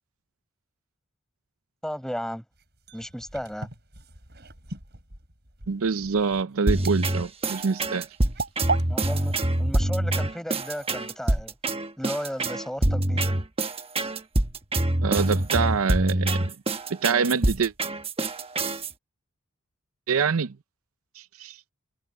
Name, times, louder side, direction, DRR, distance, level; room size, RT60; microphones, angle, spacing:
voice 1, 1.8-2.4 2.9-3.7 8.9-9.3 9.6-11.5 12.0-13.3, equal, ahead, 4.7 m, -34 dB
sound 1, 2.5-8.8, right 3 dB, 50° right, 7.7 m, -35 dB
voice 2, 5.7-8.1 15.0-16.6 16.9-17.7 20.1-20.6 21.2-21.6, right 5 dB, 75° right, 0.6 m, -25 dB
sound 2, 6.7-18.9, right 1 dB, 25° right, 1.2 m, -25 dB
head